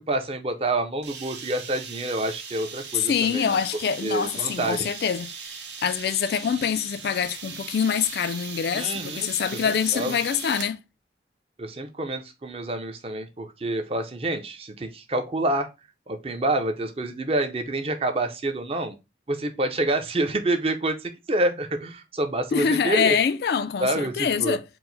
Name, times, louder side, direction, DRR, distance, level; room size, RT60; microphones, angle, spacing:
voice 1, 0.0-3.6 4.0-5.0 8.7-9.3 9.6-10.2 11.6-15.7 16.1-18.9 19.3-23.2 23.8-24.6, right 1 dB, 30° right, 0.6 m, -27 dB
sound 1, 1.0-10.8, right 6 dB, 80° right, 0.9 m, -39 dB
voice 2, 2.9-5.3 5.8-10.8 22.5-24.6, left 7 dB, 60° left, 0.3 m, -25 dB
4.5 x 2.1 x 3.9 m
head